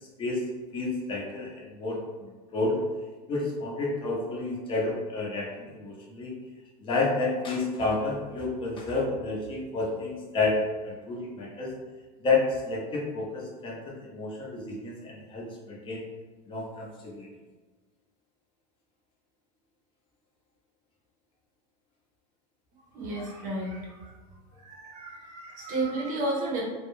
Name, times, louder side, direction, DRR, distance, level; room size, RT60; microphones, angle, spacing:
voice 1, 0.7-2.8 3.3-6.3 6.8-11.7 12.2-16.0 16.5-17.3, left 3 dB, 25° left, -2 dB, 0.6 m, -30 dB
voice 2, 22.9-24.2 24.5-26.6, right 2 dB, 40° right, -2 dB, 0.7 m, -32 dB
2.2 x 2.1 x 3.0 m, 1.3 s
supercardioid pair, 135°, 21 cm